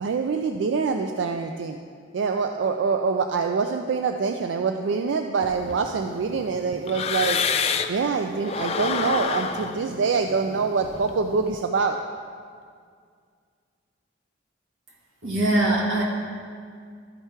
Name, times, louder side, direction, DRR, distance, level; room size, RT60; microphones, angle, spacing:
voice 1, 0.0-1.8 2.1-7.4 7.9-12.0, right 5 dB, 70° right, 5 dB, 0.4 m, -25 dB
sound 1, 5.4-8.1 8.4-11.4, left 6 dB, 35° left, 0.3 m, -29 dB
voice 2, 15.2-16.0, right 1 dB, 90° right, -3 dB, 1.6 m, -22 dB
12.5 x 4.6 x 4.4 m, 2.1 s
head